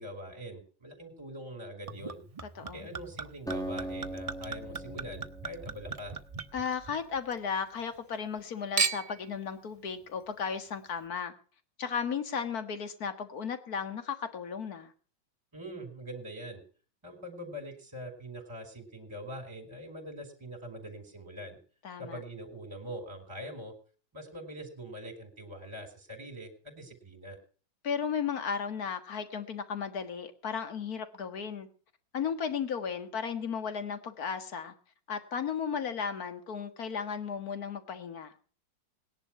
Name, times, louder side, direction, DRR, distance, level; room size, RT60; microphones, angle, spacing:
voice 1, 0.0-2.2 2.7-6.2 15.5-16.6 17.0-21.6 22.0-23.7 24.1-27.4, equal, 15° right, 5 dB, 3.6 m, -43 dB
Chink clink / Liquid, 1.9-7.4 7.7-8.4 8.8-9.3 10.0-10.1, right 5 dB, 50° right, 0.4 m, -37 dB
voice 2, 2.6-2.9 6.5-11.3 11.8-14.9 21.8-22.2 27.8-31.7 32.1-34.7 35.1-38.3, left 6 dB, 55° left, 9 dB, 2.1 m, -35 dB
Acoustic guitar, 3.5-7.0, right 1 dB, 5° left, 0.8 m, -41 dB
18.5 x 11.0 x 5.8 m, 0.42 s
omnidirectional pair, 2.0 m